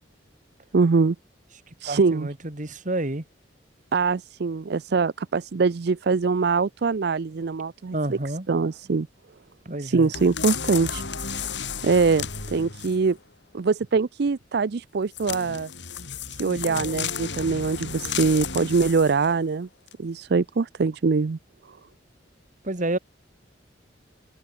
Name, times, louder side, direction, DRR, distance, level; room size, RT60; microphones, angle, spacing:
voice 1, 0.7-1.2 1.8-2.3 3.9-8.2 8.5-9.1 9.8-11.0 11.3-11.5 11.8-13.2 13.5-15.7 16.4-19.7 20.0-21.4 21.7-21.8, right 4 dB, 60° right, 0.5 m, -23 dB
voice 2, 1.9-3.2 7.9-8.5 9.7-10.1 22.6-23.0, right 2 dB, 45° right, 1.9 m, -29 dB
sound 1, 10.1-13.1 15.1-19.3 19.9-20.0, left 6 dB, 70° left, 4.5 m, -33 dB
open air
head